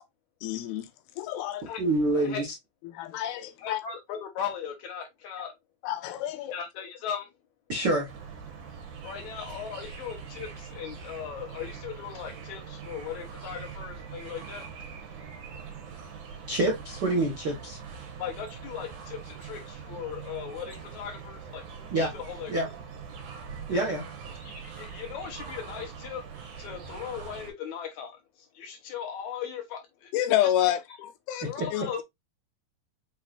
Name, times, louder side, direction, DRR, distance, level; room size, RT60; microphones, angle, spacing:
voice 1, 0.4-0.9 1.2-1.8 2.8-3.8 5.8-6.5 30.1-30.8 31.3-31.5 31.7-31.8, left 12 dB, 85° left, 2.6 m, -28 dB
voice 2, 1.8-2.5 7.7-8.1 16.5-17.8 21.9-22.1 22.5-22.7 23.7-24.0 31.4-31.5, right 2 dB, 85° right, 0.9 m, -26 dB
voice 3, 3.6-5.5 6.5-7.3 9.0-14.7 18.2-21.6 22.1-22.7 23.7-23.8 24.4-26.2 26.6-28.2 28.5-30.1 30.4-30.5 31.0-31.1 31.4-32.0, left 8 dB, 65° left, 2.1 m, -38 dB
sound 1, 8.1-27.5, right 6 dB, 65° right, 2.4 m, -43 dB
6.2 x 3.3 x 2.4 m
omnidirectional pair, 4.2 m